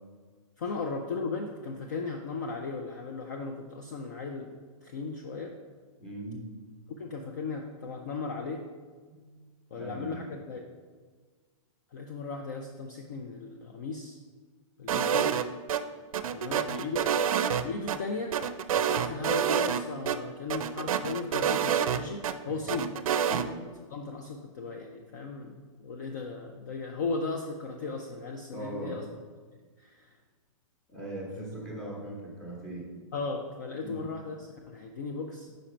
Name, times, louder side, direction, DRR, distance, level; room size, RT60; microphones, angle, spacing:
voice 1, 0.6-5.5 6.9-8.6 9.7-10.6 11.9-14.2 14.8-15.3 16.3-17.1 17.6-18.4 18.7-22.9 23.9-29.0 29.8-30.2 33.1-35.5, left 4 dB, 35° left, 2 dB, 0.4 m, -36 dB
voice 2, 6.0-6.5 9.1-9.3 9.8-10.2 23.3-23.5 25.1-25.2 28.5-29.0 30.9-32.9 33.8-34.1, right 1 dB, 5° left, -4 dB, 0.9 m, -39 dB
sound 1, 14.9-15.8 16.1-18.0 18.3-19.8 20.1-20.2 20.5-22.3 22.7-23.4, right 8 dB, 80° right, 0.5 m, -27 dB
5.1 x 4.3 x 5.0 m, 1.5 s
hypercardioid pair, 175°, 18 cm